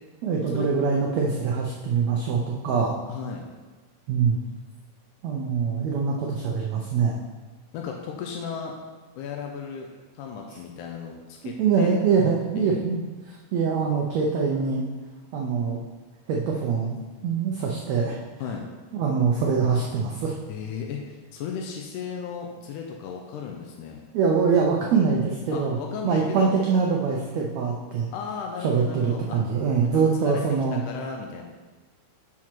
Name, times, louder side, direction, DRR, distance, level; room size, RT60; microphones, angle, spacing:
voice 1, 0.2-2.9 4.1-4.4 5.2-7.2 11.6-13.0 13.5-14.8 15.3-15.8 16.3-18.2 18.9-20.4 24.1-25.8 26.0-28.1 28.6-30.8, right 5 dB, 85° right, -1 dB, 1.5 m, -24 dB
voice 2, 3.1-3.5 7.7-8.8 9.2-9.9 10.1-11.9 12.6-12.9 18.4-18.7 20.5-24.0 25.5-26.6 28.1-29.4 29.9-30.4 30.8-31.4, left 6 dB, 75° left, 1 dB, 2.0 m, -35 dB
6.2 x 5.9 x 4.4 m, 1.3 s
omnidirectional pair, 4.0 m